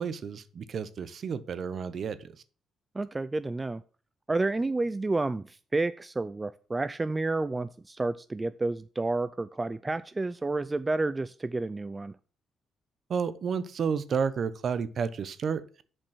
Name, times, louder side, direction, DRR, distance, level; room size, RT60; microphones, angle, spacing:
voice 1, 0.0-2.3 13.1-15.6, right 6 dB, 55° right, 15 dB, 0.8 m, -31 dB
voice 2, 2.9-3.8 4.3-12.2, right 2 dB, 20° right, 14 dB, 0.4 m, -30 dB
7.2 x 5.3 x 6.3 m, 0.40 s
cardioid pair, 90°, 0 cm